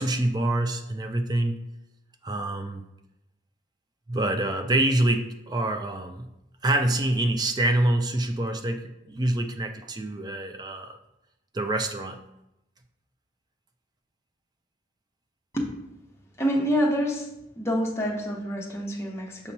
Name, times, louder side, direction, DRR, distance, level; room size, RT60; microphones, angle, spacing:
voice 1, 0.0-1.6 2.2-2.8 4.1-6.3 6.6-11.0 11.5-12.2, right 1 dB, 20° right, 7 dB, 0.4 m, -26 dB
voice 2, 16.4-17.3 17.6-19.5, equal, 15° left, -2 dB, 0.9 m, -27 dB
6.9 x 2.9 x 5.2 m, 0.88 s
head